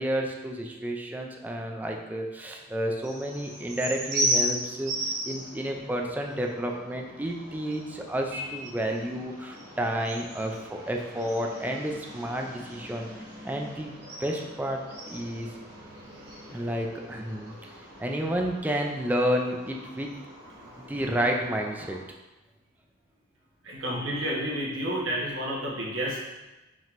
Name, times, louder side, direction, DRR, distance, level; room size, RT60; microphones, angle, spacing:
voice 1, 0.0-13.1 13.4-13.9 14.2-14.8 15.1-15.6 16.5-17.5 18.0-20.1 20.8-22.0, equal, 10° right, 1 dB, 0.3 m, -30 dB
sound 1, 3.0-22.0, equal, 55° right, 1.2 m, -37 dB
voice 2, 23.6-26.2, equal, 85° right, -3 dB, 1.1 m, -30 dB
5.1 x 3.6 x 2.5 m, 1.1 s
head